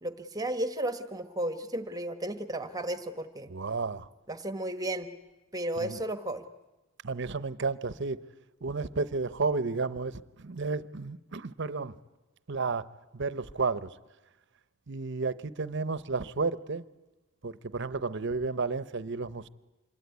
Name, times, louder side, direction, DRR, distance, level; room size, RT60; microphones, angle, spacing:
voice 1, 0.0-3.5 4.3-5.1 5.5-6.4, right 1 dB, 20° right, 1.2 m, -33 dB
voice 2, 3.5-4.1 5.8-6.0 7.0-8.2 8.6-10.1 10.4-12.0 12.5-12.9 13.1-13.9 14.9-16.8 17.4-19.5, right 4 dB, 60° right, 0.8 m, -32 dB
26.0 x 21.0 x 9.5 m
head